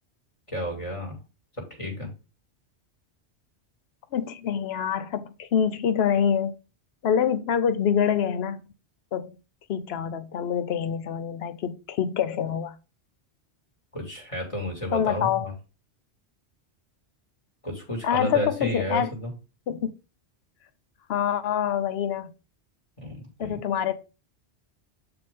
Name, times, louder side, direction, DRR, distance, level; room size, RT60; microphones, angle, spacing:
voice 1, 0.5-1.2 1.7-2.1 13.9-15.5 17.6-19.3 23.0-23.6, left 1 dB, 30° left, 2.1 m, -31 dB
voice 2, 4.1-6.5 7.0-8.6 9.1-9.4 9.7-12.8 14.9-15.5 18.0-19.1 19.7-19.9 21.1-22.3 23.4-23.9, left 8 dB, 65° left, 0.9 m, -26 dB
7.8 x 4.8 x 3.6 m
omnidirectional pair, 1.1 m